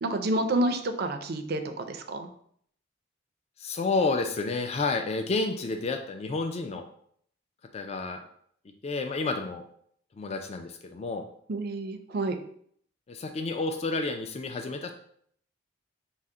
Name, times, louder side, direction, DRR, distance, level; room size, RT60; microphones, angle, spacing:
voice 1, 0.0-2.3 11.5-12.4, right 2 dB, 55° right, 7 dB, 0.4 m, -29 dB
voice 2, 3.6-6.8 7.7-8.2 8.8-9.6 10.2-11.2 13.1-14.9, left 3 dB, 30° left, 5 dB, 0.3 m, -30 dB
5.5 x 2.0 x 3.6 m, 0.65 s
head